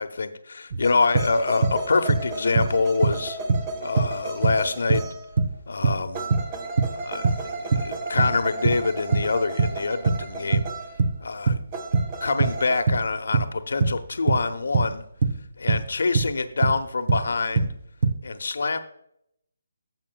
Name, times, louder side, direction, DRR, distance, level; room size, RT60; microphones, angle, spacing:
voice 1, 0.0-3.4 3.8-5.0 5.7-6.2 7.0-10.7 11.2-11.6 12.2-15.0 15.6-17.7 18.2-18.8, left 4 dB, 65° left, 9 dB, 0.9 m, -25 dB
sound 1, 0.7-1.8 2.1-3.2 3.5-9.3 9.6-16.8 17.1-18.2, right 4 dB, 50° right, 0.9 m, -23 dB
sound 2, 0.8-5.5 6.1-11.0 11.7-12.8, right 3 dB, 25° right, 1.2 m, -34 dB
12.5 x 7.5 x 2.3 m, 0.73 s
figure-of-eight pair, 150°, 0 cm